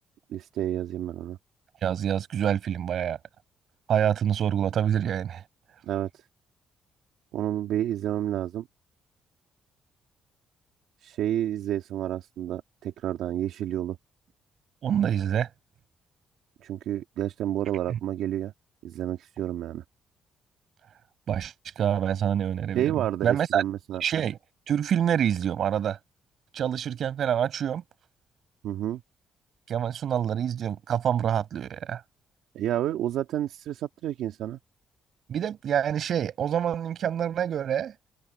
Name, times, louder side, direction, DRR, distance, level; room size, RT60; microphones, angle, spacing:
voice 1, 0.3-1.4 5.8-6.2 7.3-8.7 11.0-14.0 16.6-18.5 18.8-19.8 22.7-24.0 28.6-29.0 32.5-34.6, right 12 dB, 85° right, 1.6 m, -30 dB
voice 2, 1.8-3.2 3.9-5.4 14.8-15.5 17.9-18.0 21.3-22.9 23.2-23.6 24.0-24.4 24.7-26.0 26.5-27.8 29.7-32.0 35.3-37.9, right 9 dB, 65° right, 5.9 m, -26 dB
cardioid pair, 90°, 0 cm